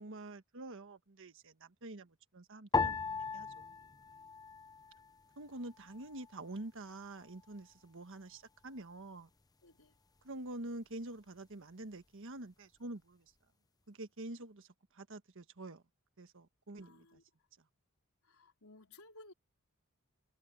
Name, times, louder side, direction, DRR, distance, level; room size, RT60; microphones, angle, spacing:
voice 1, 0.0-2.9 3.3-3.7 5.4-9.3 10.2-13.3 13.9-14.7 14.9-15.8 16.2-17.2, right 2 dB, 65° right, 1.3 m, -47 dB
sound 1, 2.7-5.3 5.5-6.4 7.0-7.5, left 5 dB, 20° left, 0.7 m, -37 dB
voice 2, 9.6-10.0 16.7-17.2 18.2-19.3, left 2 dB, 80° left, 4.4 m, -58 dB
head